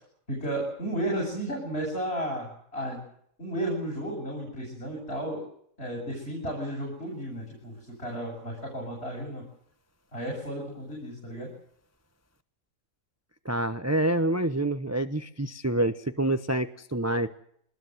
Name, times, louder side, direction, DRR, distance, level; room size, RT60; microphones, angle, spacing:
voice 1, 0.3-3.0 3.4-5.4 5.8-7.7 8.0-9.4 10.1-11.5, right 1 dB, 35° left, -1 dB, 8.2 m, -33 dB
voice 2, 13.4-17.4, right 1 dB, 15° right, 11 dB, 0.6 m, -27 dB
23.5 x 20.5 x 7.9 m, 0.66 s
omnidirectional pair, 1.9 m